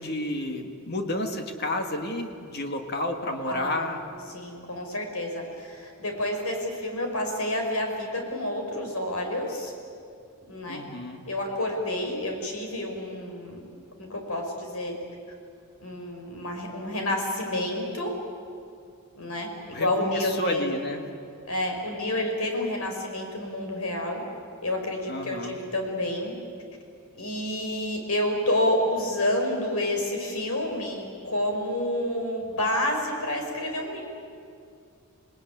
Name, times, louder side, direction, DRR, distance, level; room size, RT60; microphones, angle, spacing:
voice 1, 0.0-4.0 10.7-11.2 19.7-21.0 25.1-25.6, left 1 dB, 50° left, 4 dB, 1.9 m, -31 dB
voice 2, 3.5-3.9 4.3-9.7 10.5-10.8 11.3-13.6 13.9-14.9 15.8-18.1 19.2-20.7 21.5-24.2 24.6-26.3 27.1-34.0, left 1 dB, 90° left, 2 dB, 5.1 m, -29 dB
27.5 x 19.0 x 9.4 m, 2.5 s
head